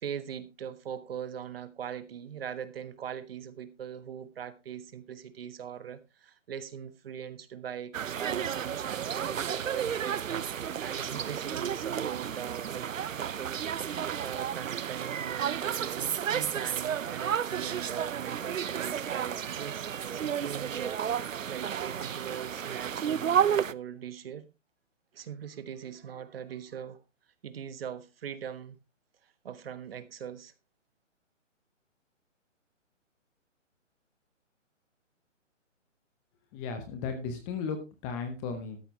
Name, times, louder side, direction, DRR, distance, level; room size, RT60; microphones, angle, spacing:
voice 1, 0.0-10.5 10.8-12.9 14.2-24.4 25.1-27.0 27.4-28.8 29.4-30.5, right 8 dB, 50° right, 1.3 m, -41 dB
sound 1, 7.9-23.7, right 8 dB, 85° right, 0.7 m, -32 dB
voice 2, 36.5-38.8, left 5 dB, 10° left, 0.8 m, -35 dB
13.0 x 10.0 x 3.1 m
hypercardioid pair, 155°, 38 cm